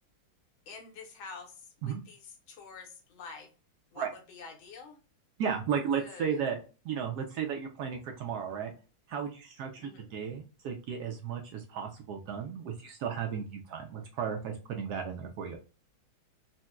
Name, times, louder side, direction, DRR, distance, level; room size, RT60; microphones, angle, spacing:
voice 1, 0.7-3.5 3.9-5.0 6.0-6.4 9.8-10.1, left 5 dB, 75° left, 3 dB, 1.6 m, -48 dB
voice 2, 5.4-6.6 6.8-8.7 9.1-15.6, right 7 dB, 75° right, 2 dB, 0.9 m, -34 dB
4.1 x 2.1 x 2.3 m, 0.34 s
omnidirectional pair, 2.2 m